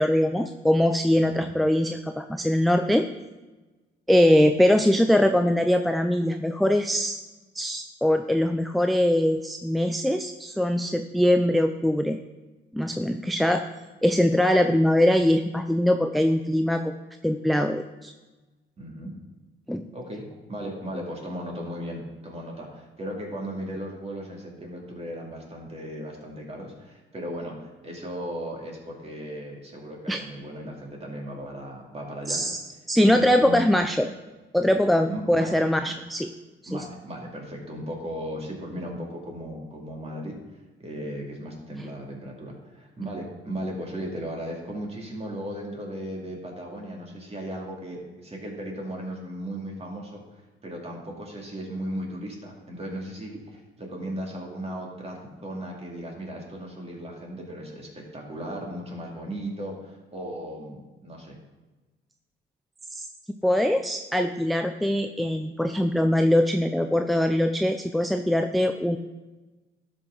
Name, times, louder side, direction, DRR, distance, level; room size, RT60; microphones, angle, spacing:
voice 1, 0.0-3.1 4.1-7.2 7.5-12.2 12.7-13.7 14.0-16.9 17.2-18.1 19.7-19.8 30.1-30.2 32.3-32.6 32.9-34.1 34.5-36.3 36.7-36.8 62.9-63.1 63.4-69.0, left 1 dB, ahead, 6 dB, 0.4 m, -22 dB
voice 2, 1.2-1.5 18.8-19.2 19.9-32.4 32.9-33.7 35.1-35.7 36.7-40.4 40.8-61.4, equal, 30° right, -1 dB, 2.6 m, -36 dB
12.0 x 5.9 x 3.9 m, 1.2 s
cardioid pair, 90°, 20 cm